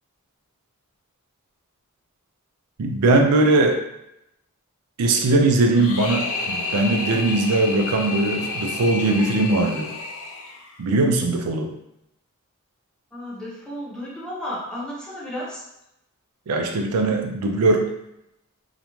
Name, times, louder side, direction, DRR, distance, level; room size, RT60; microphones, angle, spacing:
voice 1, 2.8-3.8 5.0-9.9 10.8-11.7 16.5-17.9, right 2 dB, 90° right, 3 dB, 0.4 m, -20 dB
sound 1, 5.7-10.9, left 3 dB, 65° left, 0.4 m, -30 dB
voice 2, 13.1-15.6, equal, 5° left, -8 dB, 0.7 m, -33 dB
2.4 x 2.1 x 3.0 m, 0.84 s
head